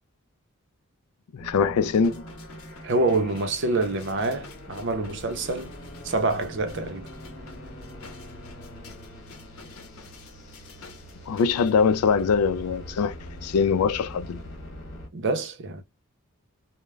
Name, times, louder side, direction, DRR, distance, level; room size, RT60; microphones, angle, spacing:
voice 1, 1.3-2.2 11.3-13.1 13.4-14.4, left 5 dB, 85° left, 0.3 m, -22 dB
sound 1, 1.4-15.1, equal, 50° left, 1.4 m, -43 dB
sound 2, 1.8-11.7 12.2-12.3, left 4 dB, 70° left, 0.8 m, -50 dB
voice 2, 2.8-5.7 6.0-7.1 15.1-15.8, right 2 dB, 55° right, 0.6 m, -26 dB
3.2 x 2.0 x 2.3 m
head